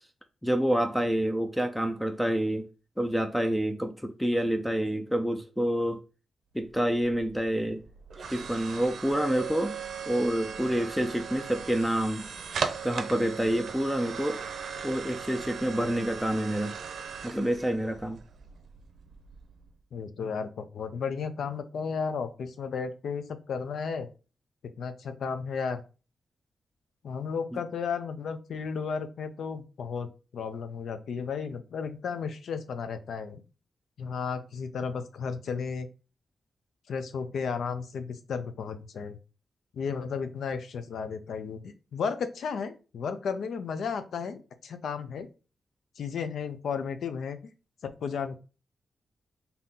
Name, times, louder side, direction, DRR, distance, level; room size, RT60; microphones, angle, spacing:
voice 1, 0.4-2.7 3.0-6.0 6.5-7.8 8.3-9.8 10.1-12.3 12.8-14.4 14.8-16.7 17.2-18.2 27.5-27.6, equal, ahead, 0.3 m, -28 dB
sound 1, 6.6-19.7, right 6 dB, 70° right, 0.6 m, -38 dB
voice 2, 19.9-24.1 24.8-25.8 27.0-33.4 34.0-35.9 36.9-39.2 39.7-45.3 46.0-47.4 47.8-48.4, left 6 dB, 75° left, 0.5 m, -34 dB
3.9 x 2.8 x 3.7 m
wide cardioid pair, 155°, 0 cm